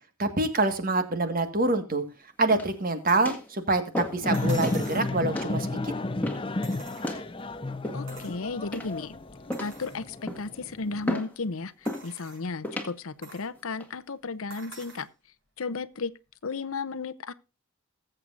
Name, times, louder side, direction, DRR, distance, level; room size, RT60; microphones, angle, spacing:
voice 1, 0.2-2.0 2.4-5.9, right 2 dB, 40° right, 1.6 m, -26 dB
sound 1, 2.5-2.9 3.3-3.5 3.9-4.3 4.6-4.9 5.3-5.5 6.2-6.5 7.0-7.3 7.8-8.3 8.7-9.1 9.5-9.8 10.3-10.6 11.1-11.3 11.9-12.1 12.6-12.9 13.6-13.9, left 1 dB, 5° left, 1.7 m, -33 dB
sound 2, 3.1-3.4 4.3-5.1 6.6-7.4 8.1-8.4 8.9-9.0 9.5-10.0 10.6-10.7 11.9-12.5 13.2-13.5 14.5-15.1 16.3-16.4, right 4 dB, 60° right, 6.5 m, -46 dB
sound 3, 4.2-11.1, left 2 dB, 25° left, 0.6 m, -32 dB
voice 2, 7.9-9.2 9.6-15.1 15.6-16.1 16.4-17.3, left 4 dB, 70° left, 0.7 m, -34 dB
20.0 x 7.9 x 2.6 m
head